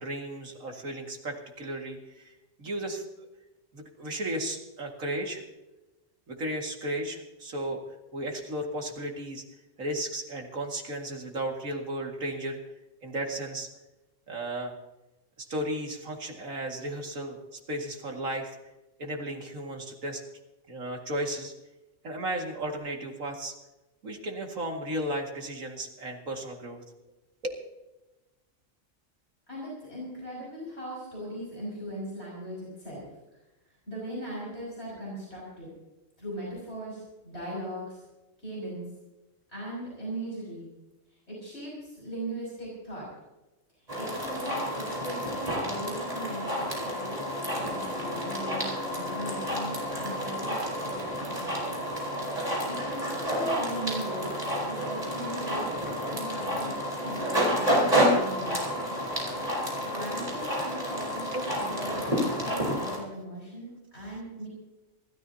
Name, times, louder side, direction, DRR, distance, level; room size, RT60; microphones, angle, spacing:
voice 1, 0.0-2.3 2.6-3.0 3.7-5.4 6.3-7.8 8.1-9.4 9.8-12.6 13.0-13.7 14.3-14.7 15.4-17.4 17.7-18.5 19.0-20.2 20.7-21.5 22.0-23.5 24.0-26.8 27.4-27.5 61.3-61.5, right 1 dB, 85° right, 2 dB, 2.6 m, -34 dB
voice 2, 29.5-33.1 33.9-35.7 36.2-38.0 38.4-38.8 39.5-40.7 41.3-43.1 43.9-51.8 52.4-58.8 59.6-64.5, right 1 dB, 55° left, -6 dB, 6.3 m, -39 dB
sound 1, 43.9-63.0, equal, 30° right, 4.9 m, -30 dB
27.0 x 13.5 x 2.8 m, 1.0 s
omnidirectional pair, 1.4 m